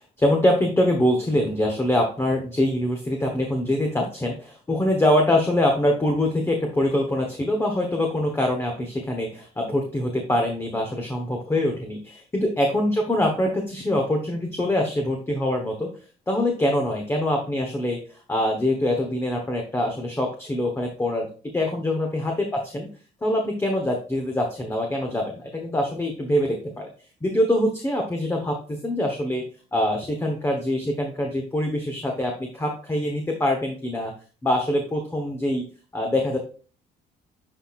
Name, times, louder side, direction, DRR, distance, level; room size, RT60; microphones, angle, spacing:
voice 1, 0.2-15.9 16.3-18.0 18.3-21.3 21.5-22.9 23.2-26.9 27.2-29.4 29.7-34.1 34.4-35.6 35.9-36.4, left 1 dB, 15° left, 2 dB, 1.1 m, -24 dB
9.0 x 4.3 x 2.4 m, 0.39 s
cardioid pair, 110°, 17 cm